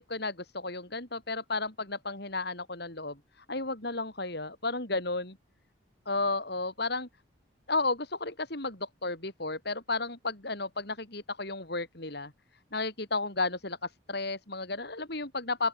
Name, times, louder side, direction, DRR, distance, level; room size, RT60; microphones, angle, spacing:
voice 1, 0.0-3.2 3.5-5.4 6.1-7.1 7.7-12.3 12.7-15.7, left 3 dB, 55° left, 3.9 m, -33 dB
open air
head